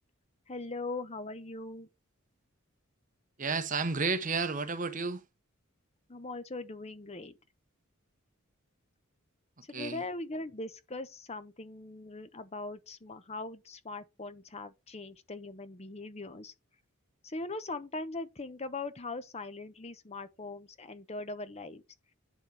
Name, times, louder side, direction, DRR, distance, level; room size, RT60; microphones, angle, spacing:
voice 1, 0.5-1.9 6.1-7.3 9.6-16.5 17.2-21.8, left 2 dB, 30° left, 0.9 m, -40 dB
voice 2, 3.4-5.2 9.7-10.0, right 4 dB, 40° right, 0.9 m, -31 dB
10.5 x 4.2 x 4.8 m
head